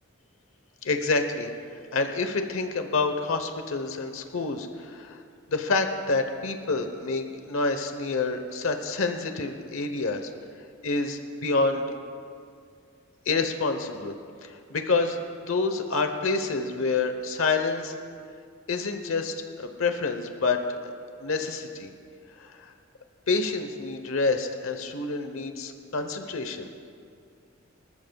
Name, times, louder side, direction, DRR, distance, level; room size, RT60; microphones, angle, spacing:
voice 1, 0.8-1.5 1.9-5.2 5.5-10.3 10.8-11.8 13.3-14.1 14.4-15.2 15.5-17.9 18.7-20.9 21.2-21.9 23.3-26.7, left 3 dB, 75° left, 7 dB, 1.0 m, -28 dB
25.0 x 13.5 x 2.4 m, 2.3 s
head